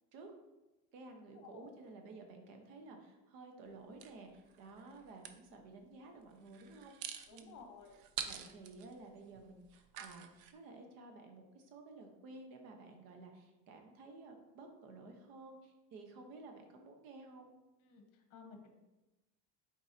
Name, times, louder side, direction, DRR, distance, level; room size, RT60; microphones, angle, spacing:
voice 1, 0.9-6.9 7.3-7.6 8.2-17.5, right 3 dB, 80° right, 4 dB, 1.2 m, -53 dB
sound 1, 4.0-5.4 6.5-10.5, right 8 dB, 65° right, 0.6 m, -46 dB
voice 2, 7.3-7.9 17.8-18.7, left 5 dB, 50° left, 4 dB, 1.1 m, -55 dB
7.5 x 4.5 x 2.8 m, 1.1 s
cardioid pair, 165°, 39 cm